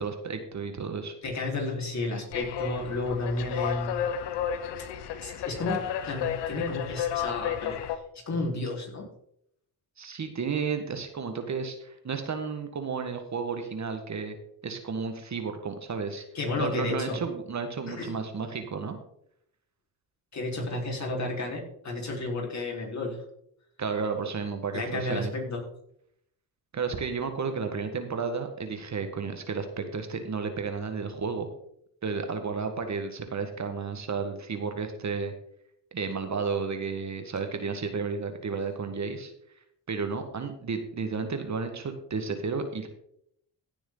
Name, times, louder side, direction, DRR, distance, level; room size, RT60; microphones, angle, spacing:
voice 1, 0.0-1.1 10.0-14.4 14.6-16.2 16.6-19.0 23.8-25.3 26.7-31.5 32.0-35.3 35.9-39.3 39.9-42.9, right 5 dB, 40° right, 7 dB, 1.6 m, -32 dB
voice 2, 1.2-4.0 5.2-7.8 8.3-9.1 16.3-17.2 17.9-18.1 20.3-23.2 24.7-25.6, left 2 dB, 40° left, -1 dB, 4.3 m, -32 dB
sound 1, 2.3-8.0, left 9 dB, 85° left, 1.1 m, -32 dB
16.0 x 6.9 x 4.0 m, 0.73 s
cardioid pair, 80°, 41 cm